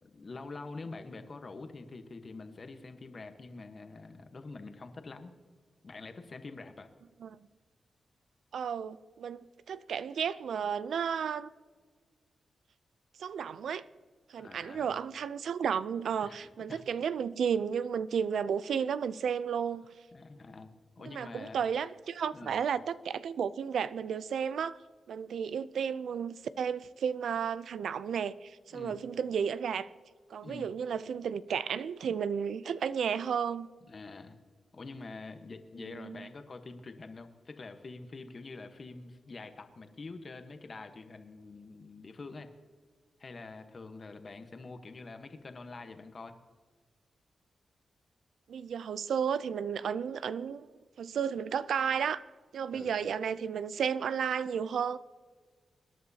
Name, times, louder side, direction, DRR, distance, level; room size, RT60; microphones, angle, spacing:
voice 1, 0.0-5.3 5.8-6.9 14.4-15.0 16.2-16.4 16.7-16.8 20.1-20.7 21.0-21.6 22.3-22.6 28.7-29.0 30.4-30.7 33.9-34.4 34.7-42.5 43.2-46.4 52.7-52.9, left 3 dB, 40° left, 7 dB, 1.1 m, -46 dB
voice 2, 8.5-11.5 13.2-13.8 14.3-19.9 21.0-24.8 25.1-29.9 30.3-33.7 35.8-36.3 48.5-50.7 51.0-52.2 52.5-55.0, right 7 dB, 85° right, 15 dB, 0.4 m, -33 dB
24.5 x 10.5 x 2.8 m, 1.5 s
wide cardioid pair, 110°, 0 cm